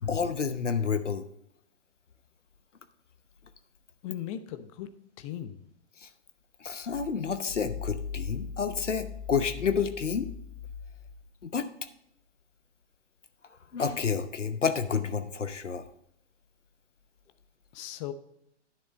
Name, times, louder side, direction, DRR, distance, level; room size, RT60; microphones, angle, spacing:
voice 1, 0.0-1.3 6.0-6.1 6.6-10.3 11.4-11.7 13.7-15.9, left 6 dB, 85° left, 10 dB, 0.9 m, -29 dB
voice 2, 4.0-4.9 5.2-5.7 17.7-18.1, left 11 dB, 30° left, 11 dB, 0.7 m, -38 dB
11.0 x 6.5 x 4.0 m, 0.74 s
figure-of-eight pair, 115°, 35 cm